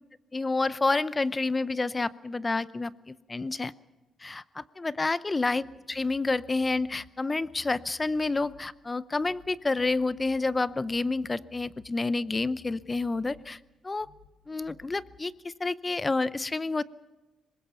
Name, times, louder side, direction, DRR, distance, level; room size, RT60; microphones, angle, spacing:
voice 1, 0.3-3.7 4.2-13.6 13.8-14.1 14.5-16.8, left 3 dB, 20° left, 17 dB, 0.6 m, -29 dB
sound 1, 5.6-7.1 7.4-8.7 9.2-9.5 9.8-11.9 12.2-13.5 14.0-14.3 14.6-15.2, left 6 dB, 90° left, 3.8 m, -57 dB
24.0 x 21.0 x 5.7 m, 1.2 s
cardioid pair, 125°, 0 cm